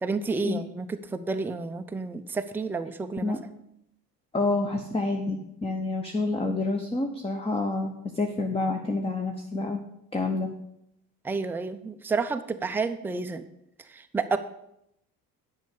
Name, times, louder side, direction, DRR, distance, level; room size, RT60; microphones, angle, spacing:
voice 1, 0.0-3.3 11.2-13.4 13.9-14.4, right 4 dB, 5° right, 8 dB, 0.5 m, -30 dB
voice 2, 4.3-9.8 10.1-10.5, left 2 dB, 10° left, 4 dB, 1.0 m, -28 dB
10.0 x 5.6 x 6.8 m, 0.79 s
figure-of-eight pair, 55°, 49 cm